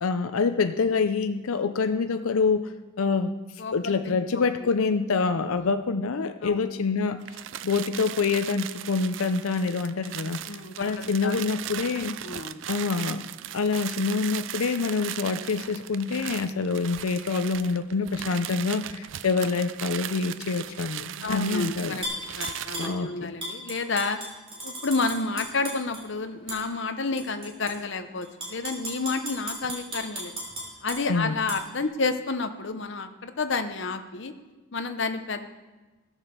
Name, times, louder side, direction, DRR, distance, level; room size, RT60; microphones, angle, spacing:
voice 1, 0.0-3.3 3.7-10.4 10.8-12.2 12.7-13.2 13.5-22.0 22.8-23.3 31.1-31.3, left 4 dB, 85° left, 9 dB, 0.6 m, -26 dB
voice 2, 3.6-4.7 5.5-5.7 6.4-6.6 10.5-11.4 12.2-12.6 21.2-22.0 22.4-24.2 24.6-30.3 30.8-34.3 34.7-35.5, left 3 dB, 60° left, 7 dB, 0.8 m, -30 dB
sound 1, 7.2-23.0, right 11 dB, 65° right, 0.4 m, -38 dB
Tap / Glass, 22.0-22.9 23.4-26.0 26.5-26.6 27.2-27.7 28.2-31.0 31.5-31.6, right 1 dB, 25° right, 3.3 m, -35 dB
15.5 x 7.3 x 6.7 m, 1.2 s
head